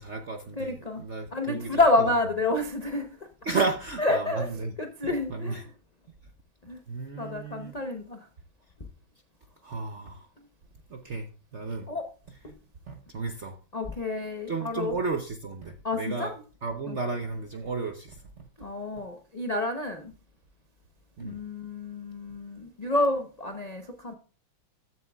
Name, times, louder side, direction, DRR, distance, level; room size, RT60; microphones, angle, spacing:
voice 1, 0.0-1.9 3.4-4.7 5.0-5.6 6.9-7.8 9.6-10.3 10.9-11.9 12.9-13.6 14.5-16.3 16.6-18.5 21.2-21.4, right 4 dB, 65° right, 0.7 m, -33 dB
voice 2, 0.6-1.0 1.3-3.3 4.0-4.5 4.8-5.6 6.6-6.8 7.1-8.3 11.9-12.1 12.4-12.5 13.7-14.9 15.8-16.3 16.9-17.0 18.6-20.1 21.2-24.1, left 2 dB, 75° left, 0.3 m, -29 dB
14.0 x 7.6 x 2.3 m
omnidirectional pair, 2.2 m